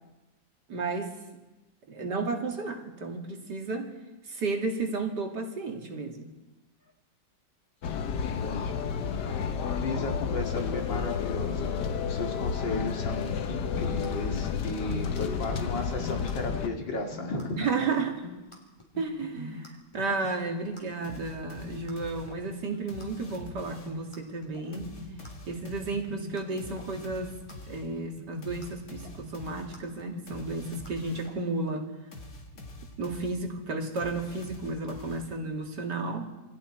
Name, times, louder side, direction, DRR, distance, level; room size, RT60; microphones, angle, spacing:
voice 1, 0.7-1.2 1.9-3.9 4.3-6.3 17.6-18.2 19.0-25.0 25.5-27.4 27.7-31.9 33.0-36.4, right 3 dB, 65° right, 3 dB, 2.8 m, -33 dB
sound 1, 7.8-16.7, left 6 dB, 65° left, 1.6 m, -31 dB
voice 2, 8.2-8.7 9.1-17.7, left 2 dB, 90° left, 2 dB, 3.0 m, -35 dB
sound 2, 13.5-31.4, left 3 dB, 15° left, 3.5 m, -45 dB
sound 3, 21.0-24.1 24.7-31.5 32.1-35.6, left 1 dB, 50° left, 2.7 m, -46 dB
28.0 x 21.5 x 4.4 m, 1.1 s
omnidirectional pair, 2.0 m